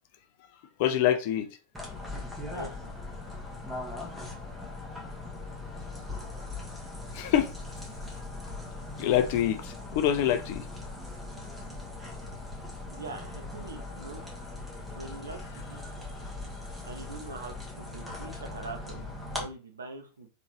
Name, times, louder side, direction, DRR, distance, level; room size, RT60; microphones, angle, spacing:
voice 1, 0.8-1.5 7.1-7.5 9.0-10.6, left 10 dB, 50° left, 0.7 m, -25 dB
sound 1, 1.7-19.5, left 2 dB, 5° right, 1.4 m, -40 dB
voice 2, 2.5-2.9 12.9-14.3 14.9-15.4 15.7-15.8 16.8-20.3, right 3 dB, 70° right, 0.9 m, -43 dB
3.9 x 3.8 x 2.9 m
figure-of-eight pair, 90°, 0 cm